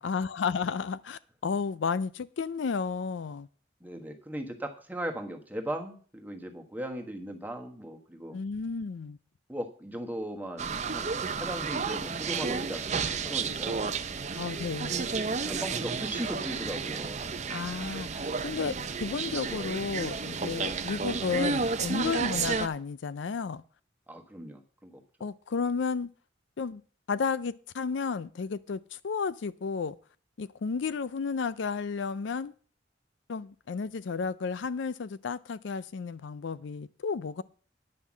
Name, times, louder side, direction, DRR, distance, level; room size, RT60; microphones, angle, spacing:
voice 1, 0.0-3.5 8.3-9.2 14.3-15.0 17.5-18.8 19.0-23.6 25.2-26.1 26.6-26.8 27.1-30.0 30.4-32.5 33.3-37.4, left 5 dB, 70° left, 0.4 m, -32 dB
voice 2, 3.8-8.4 9.5-13.9 14.8-15.1 15.4-17.2 20.5-20.8 22.3-22.5 24.1-25.0, right 1 dB, 10° right, 1.3 m, -38 dB
sound 1, 10.6-22.7, right 5 dB, 35° right, 0.6 m, -32 dB
10.0 x 5.8 x 7.3 m
head